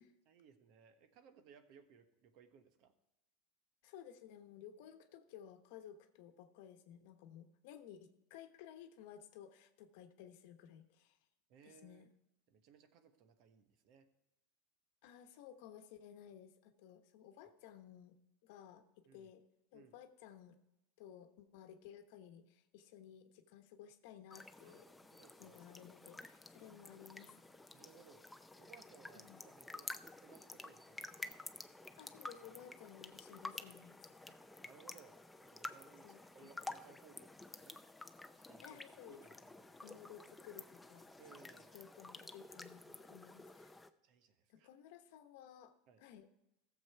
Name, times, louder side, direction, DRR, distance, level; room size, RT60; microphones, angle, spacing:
voice 1, 0.2-2.9 11.5-12.1 12.5-14.1 19.1-19.3 19.7-19.9 24.6-25.6 27.7-28.2 28.6-29.9 30.2-31.4 34.3-37.8 38.3-38.8 39.1-39.9 41.2-41.7 44.0-44.7 45.9-46.0, right 6 dB, 55° right, 9 dB, 1.2 m, -63 dB
voice 2, 3.8-11.2 11.6-12.1 15.0-18.2 18.4-18.8 19.1-19.4 19.7-20.6 21.0-24.9 25.4-27.3 29.1-29.4 32.0-34.1 36.0-36.5 38.6-39.2 39.8-41.1 41.7-43.8 44.5-46.3, left 9 dB, 70° left, 8 dB, 1.0 m, -56 dB
sound 1, 24.3-43.9, left 2 dB, 5° left, 0.6 m, -52 dB
14.5 x 7.2 x 4.6 m, 0.91 s
supercardioid pair, 110°, 0 cm